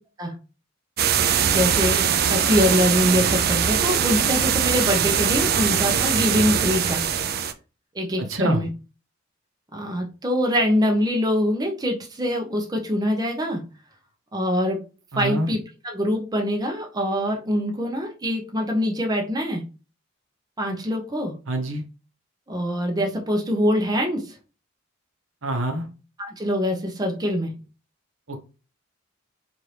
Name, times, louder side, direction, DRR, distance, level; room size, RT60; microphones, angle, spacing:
sound 1, 1.0-7.5, right 8 dB, 50° right, 0.4 m, -21 dB
voice 1, 1.5-7.0 7.9-8.7 9.7-13.6 14.3-14.8 15.2-15.6 15.8-19.6 20.6-21.3 22.5-24.4 26.2-27.5, equal, 20° right, 0.7 m, -24 dB
voice 2, 8.3-8.6 15.1-15.5 21.5-21.8 25.4-25.9 28.3-28.4, right 1 dB, 70° right, 0.9 m, -25 dB
4.5 x 2.6 x 3.2 m
head